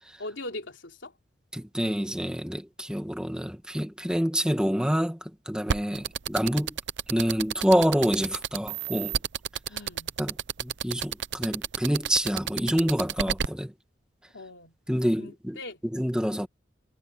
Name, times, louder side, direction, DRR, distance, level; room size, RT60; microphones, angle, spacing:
voice 1, 0.2-1.1 9.7-10.2 14.3-14.8 15.2-15.8, left 2 dB, 80° left, 3.8 m, -40 dB
voice 2, 1.5-6.8 7.1-9.2 10.2-13.7 14.9-15.6 15.9-16.5, equal, 5° right, 1.8 m, -27 dB
sound 1, 5.7-13.5, right 8 dB, 65° right, 0.6 m, -29 dB
head